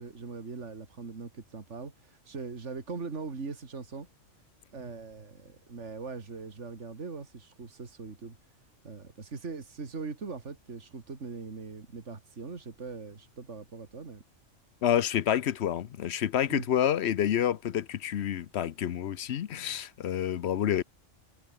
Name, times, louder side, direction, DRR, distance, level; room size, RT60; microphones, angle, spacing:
voice 1, 0.0-4.1 4.7-8.4 8.8-14.2 16.5-16.7, right 4 dB, 65° right, 2.7 m, -41 dB
voice 2, 14.8-20.8, left 10 dB, 60° left, 0.9 m, -28 dB
omnidirectional pair, 1.3 m